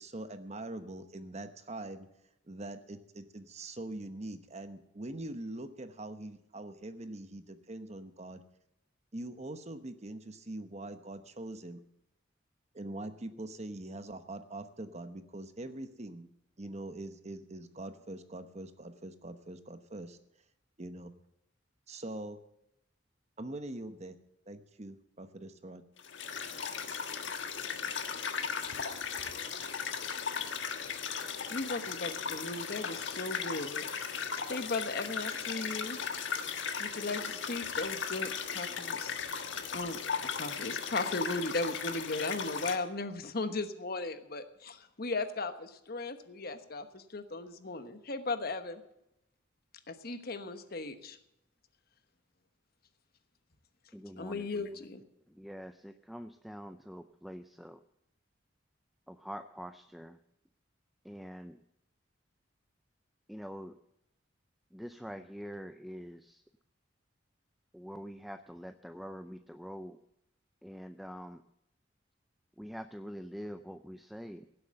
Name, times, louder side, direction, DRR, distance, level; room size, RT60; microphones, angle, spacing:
voice 1, 0.0-2.1 2.5-8.4 9.1-11.8 12.7-16.3 16.6-20.2 20.8-21.1 21.9-22.4 23.4-24.2 24.5-25.8, right 1 dB, 35° right, 10 dB, 1.0 m, -43 dB
sound 1, 26.0-42.7, left 6 dB, 70° left, 1.4 m, -37 dB
voice 2, 31.5-33.8 34.1-36.0 36.8-40.0 40.4-48.8 49.9-51.2 54.2-55.0, left 3 dB, 50° left, 9 dB, 1.1 m, -37 dB
voice 3, 53.9-54.7 55.3-57.8 59.1-60.2 61.0-61.6 63.3-63.8 64.7-66.4 67.7-70.0 70.6-71.4 72.6-74.5, equal, ahead, 8 dB, 0.4 m, -45 dB
16.5 x 7.9 x 7.6 m, 0.82 s
head